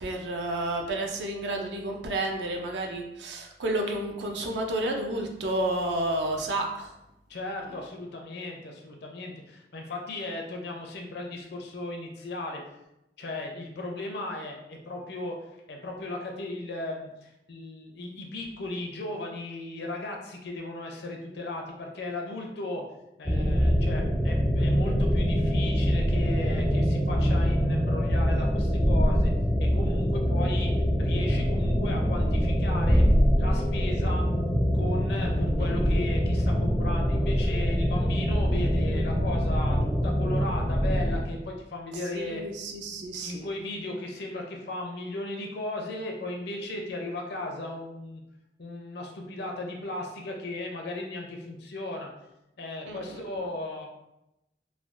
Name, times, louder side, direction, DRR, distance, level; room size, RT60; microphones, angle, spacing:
voice 1, 0.0-6.9 7.6-7.7 35.1-35.2 42.1-43.5 52.9-53.4, right 1 dB, 75° right, 2 dB, 0.5 m, -31 dB
voice 2, 7.3-12.6 13.2-15.4 15.7-22.8 23.2-29.3 29.6-30.7 31.0-33.0 33.4-34.3 34.7-39.8 40.0-42.4 42.9-48.2 48.6-52.1 52.6-53.9, left 2 dB, 65° left, 1 dB, 0.6 m, -36 dB
sound 1, 23.3-41.2, equal, 5° left, 0.3 m, -24 dB
3.3 x 2.2 x 2.4 m, 0.88 s
head